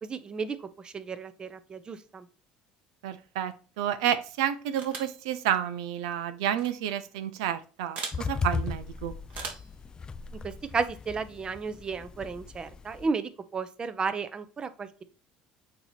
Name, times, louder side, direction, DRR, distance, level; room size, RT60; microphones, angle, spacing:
voice 1, 0.0-2.3 10.4-15.0, right 5 dB, 30° right, 12 dB, 0.7 m, -33 dB
voice 2, 3.0-9.1, right 10 dB, 90° right, 12 dB, 0.6 m, -30 dB
sound 1, 4.8-5.2 6.5-6.7 7.9-8.2 9.3-9.7, right 5 dB, 50° right, 1.9 m, -38 dB
sound 2, 8.1-13.1, left 4 dB, 25° left, 0.4 m, -36 dB
8.5 x 3.0 x 4.3 m, 0.36 s
supercardioid pair, 95°, 3 cm